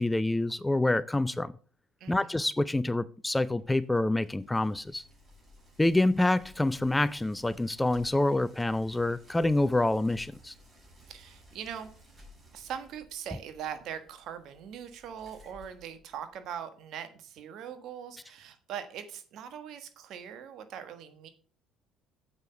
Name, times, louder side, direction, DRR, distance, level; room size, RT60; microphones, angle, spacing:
voice 1, 0.0-1.5 2.1-5.0 5.8-10.5, left 2 dB, 10° left, 0.4 m, -27 dB
voice 2, 2.0-2.5 11.1-11.9 12.5-21.3, right 8 dB, 65° right, 1.3 m, -41 dB
Bicycle, 3.5-16.5, left 1 dB, 30° right, 5.0 m, -57 dB
7.9 x 5.4 x 5.6 m
supercardioid pair, 70°, 0 cm